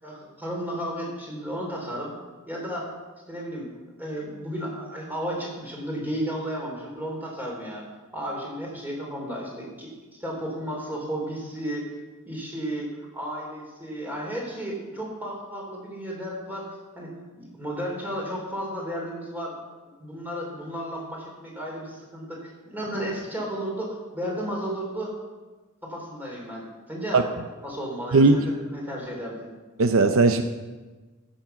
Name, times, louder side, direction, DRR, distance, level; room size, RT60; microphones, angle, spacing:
voice 1, 0.0-2.1 2.5-2.8 3.3-3.7 4.0-7.8 8.1-9.9 10.2-11.9 12.2-16.6 16.9-19.5 20.0-25.1 25.8-27.2 27.6-29.5, equal, 10° right, -2 dB, 3.2 m, -33 dB
voice 2, 28.1-28.5 29.8-30.4, right 3 dB, 70° right, 8 dB, 0.6 m, -18 dB
15.0 x 7.1 x 5.7 m, 1.3 s
head